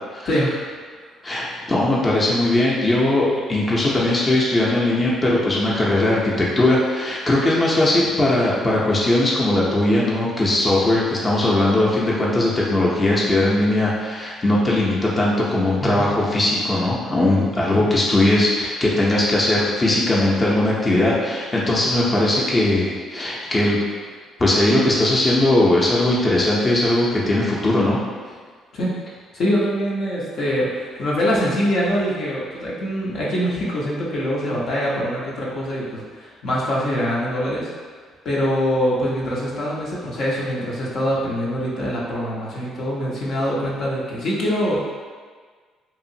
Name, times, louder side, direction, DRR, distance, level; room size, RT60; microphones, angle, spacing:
voice 1, 1.2-23.8 24.4-28.0, left 1 dB, 30° left, -5 dB, 0.6 m, -19 dB
voice 2, 15.8-16.1 17.7-17.8 28.7-28.9 29.3-37.7 38.2-44.8, equal, 65° left, -6 dB, 0.7 m, -24 dB
2.8 x 2.4 x 2.7 m, 1.5 s
supercardioid pair, 65°, 0 cm